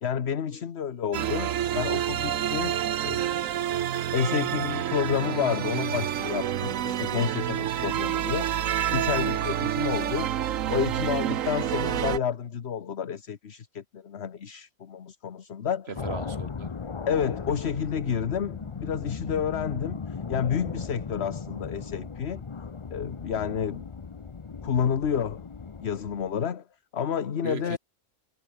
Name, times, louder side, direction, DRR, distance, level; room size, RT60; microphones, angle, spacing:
voice 1, 0.0-2.7 3.0-3.2 4.1-10.3 10.7-15.9 17.1-22.4 22.9-23.9 24.6-25.5 25.8-26.6 26.9-27.8, left 7 dB, 50° left, 1.3 m, -30 dB
sound 1, 1.1-12.2, right 10 dB, 75° right, 1.2 m, -28 dB
sound 2, 15.9-26.3, left 5 dB, 35° left, 0.5 m, -37 dB
voice 2, 15.9-16.9 27.4-27.8, right 4 dB, 45° right, 2.4 m, -38 dB
omnidirectional pair, 1.4 m